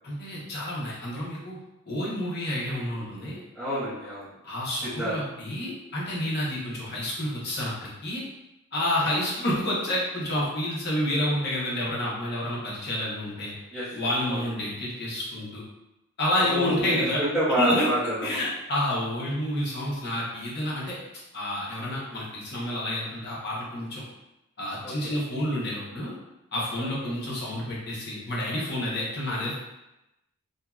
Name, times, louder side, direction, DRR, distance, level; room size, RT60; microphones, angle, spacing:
voice 1, 0.0-1.6 1.9-3.4 4.4-8.2 8.7-13.5 13.9-15.6 16.2-17.2 17.6-17.9 18.2-20.9 21.3-24.0 24.6-26.1 26.5-29.5, left 1 dB, 50° left, -6 dB, 0.9 m, -29 dB
voice 2, 3.5-4.3 4.8-5.2 9.0-9.1 13.7-13.9 14.3-14.4 16.4-18.4 24.8-25.1 26.8-27.1, equal, ahead, -12 dB, 1.2 m, -29 dB
2.8 x 2.7 x 2.3 m, 0.93 s
head